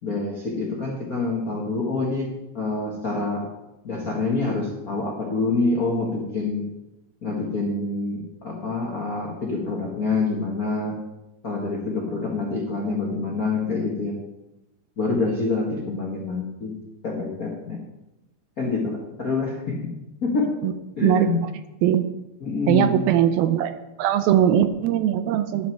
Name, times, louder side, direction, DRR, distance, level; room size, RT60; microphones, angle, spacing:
voice 1, 0.0-3.5 3.8-6.6 7.2-11.0 11.4-14.2 15.0-16.8 17.0-17.8 18.6-19.9 20.2-20.5 21.0-21.4 22.4-23.0, left 3 dB, 55° left, -2 dB, 0.9 m, -26 dB
voice 2, 22.7-23.7 24.0-25.7, right 10 dB, 80° right, 10 dB, 2.4 m, -20 dB
11.5 x 11.0 x 4.6 m, 0.96 s
omnidirectional pair, 4.4 m